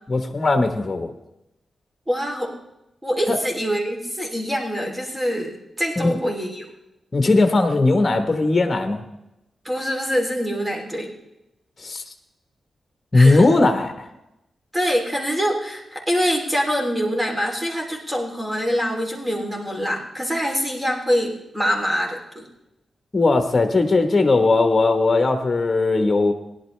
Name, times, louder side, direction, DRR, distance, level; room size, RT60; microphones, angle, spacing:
voice 1, 0.1-1.1 3.3-3.4 6.0-6.2 7.1-9.0 11.8-12.0 13.1-14.1 23.1-26.3, left 3 dB, 30° left, 6 dB, 1.3 m, -18 dB
voice 2, 2.1-2.5 3.0-6.6 9.6-11.1 13.1-13.5 14.7-22.5, equal, 15° right, 1 dB, 3.1 m, -24 dB
17.0 x 11.0 x 3.3 m, 0.89 s
cardioid pair, 60°, 0 cm